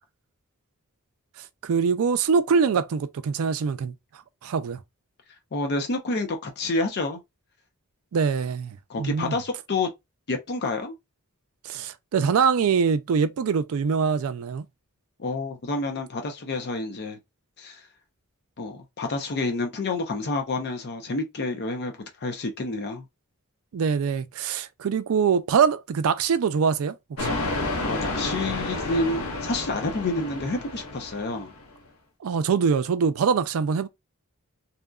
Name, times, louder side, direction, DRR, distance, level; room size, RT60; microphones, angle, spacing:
voice 1, 1.6-3.9 4.4-4.8 8.1-9.3 11.6-14.7 23.7-27.4 32.2-33.9, right 6 dB, 70° right, 0.4 m, -23 dB
voice 2, 5.5-7.2 8.9-9.9 10.3-10.9 15.2-17.2 17.6-17.8 18.6-21.9 22.2-23.0 27.8-31.5, left 2 dB, 50° left, 0.6 m, -29 dB
sound 1, 27.2-31.7, left 2 dB, 90° left, 0.8 m, -30 dB
2.7 x 2.4 x 2.3 m
head